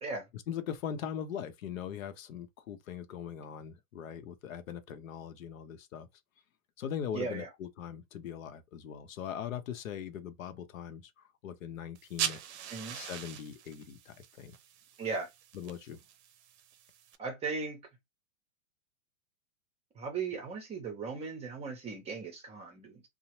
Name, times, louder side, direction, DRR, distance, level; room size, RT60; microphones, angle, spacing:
voice 1, 0.3-6.1 6.8-12.4 12.9-14.5 15.5-16.0, left 8 dB, 80° left, 0.7 m, -41 dB
voice 2, 7.1-7.5 12.7-13.0 15.0-15.3 17.2-17.8 19.9-23.0, right 4 dB, 15° right, 0.6 m, -37 dB
sound 1, 11.9-17.1, right 10 dB, 55° right, 0.6 m, -41 dB
2.7 x 2.0 x 3.0 m
hypercardioid pair, 130°, 40 cm